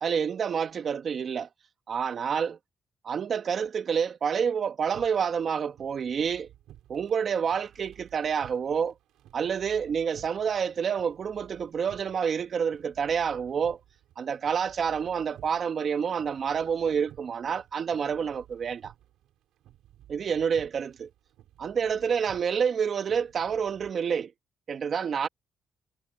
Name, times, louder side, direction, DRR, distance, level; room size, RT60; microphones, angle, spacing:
voice 1, 0.0-1.5 1.9-2.6 3.0-6.5 6.9-8.9 9.3-13.8 14.2-18.9 20.1-21.1 21.6-24.3 24.7-25.3, right 7 dB, 50° right, 1.4 m, -28 dB
sound 1, 4.8-23.9, right 13 dB, 85° right, 6.3 m, -55 dB
cardioid pair, 90°, 0 cm